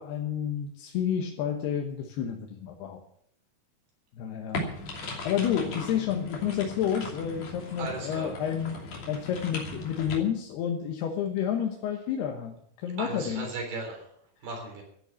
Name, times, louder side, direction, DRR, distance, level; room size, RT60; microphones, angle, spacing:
voice 1, 0.0-3.0 4.1-5.0 5.2-13.5, left 9 dB, 85° left, 2 dB, 3.3 m, -30 dB
sound 1, 4.5-10.2, left 2 dB, 55° left, 4.1 m, -38 dB
voice 2, 7.8-8.3 13.0-14.1 14.4-14.8, right 3 dB, 75° right, 2 dB, 5.5 m, -36 dB
13.5 x 10.5 x 7.1 m, 0.68 s
omnidirectional pair, 4.5 m